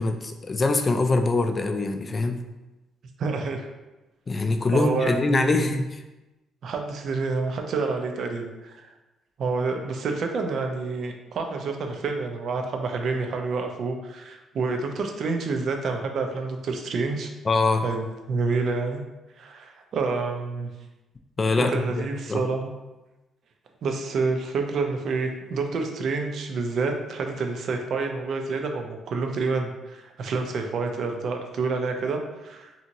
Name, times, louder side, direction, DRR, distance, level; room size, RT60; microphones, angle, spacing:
voice 1, 0.0-2.4 4.3-6.0 17.5-17.9 21.4-22.4, left 3 dB, 30° left, 6 dB, 0.3 m, -24 dB
voice 2, 3.2-3.7 4.7-5.8 6.6-8.9 9.4-17.3 17.8-19.0 19.4-20.7 21.6-22.7 23.8-32.7, right 4 dB, 60° right, 4 dB, 0.4 m, -28 dB
2.8 x 2.7 x 2.6 m, 1.1 s
cardioid pair, 85°, 0 cm